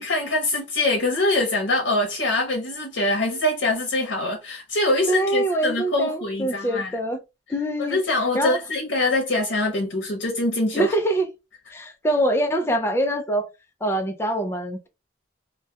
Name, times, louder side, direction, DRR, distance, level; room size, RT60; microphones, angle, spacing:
voice 1, 0.0-7.0 7.8-10.9, left 2 dB, 80° left, 0.7 m, -24 dB
voice 2, 5.1-7.2 7.5-8.0 8.3-8.6 10.7-11.3 11.7-13.5 13.8-14.9, right 1 dB, 15° left, 0.3 m, -24 dB
2.3 x 2.1 x 2.6 m
head